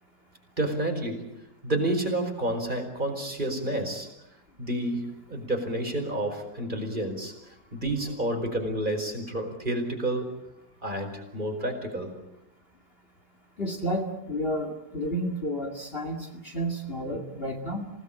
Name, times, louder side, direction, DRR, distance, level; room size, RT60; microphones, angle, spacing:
voice 1, 0.6-1.3 1.6-4.1 4.6-7.3 7.7-10.3 10.8-12.1, right 1 dB, 25° right, 3 dB, 5.0 m, -29 dB
voice 2, 13.6-17.9, equal, 35° left, 4 dB, 2.4 m, -31 dB
28.0 x 18.0 x 8.8 m, 0.83 s
omnidirectional pair, 1.9 m